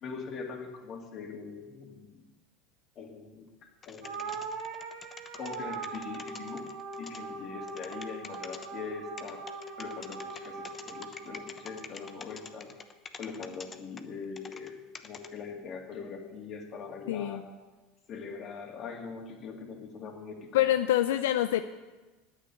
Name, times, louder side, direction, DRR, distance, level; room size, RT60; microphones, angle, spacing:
voice 1, 0.0-2.2 3.0-3.5 3.9-4.3 5.3-6.6 7.0-9.4 9.8-12.7 13.1-17.4 18.1-20.6, left 5 dB, 45° left, 2 dB, 2.7 m, -42 dB
sound 1, 3.8-7.2 7.7-8.7 9.2-14.7 15.0-15.3, left 5 dB, 25° left, 1.0 m, -45 dB
sound 2, 4.0-12.6, right 4 dB, 80° right, 1.9 m, -41 dB
voice 2, 17.1-17.4 20.5-21.6, left 13 dB, 85° left, 9 dB, 0.5 m, -26 dB
10.0 x 8.8 x 9.4 m, 1.2 s
supercardioid pair, 110°, 0 cm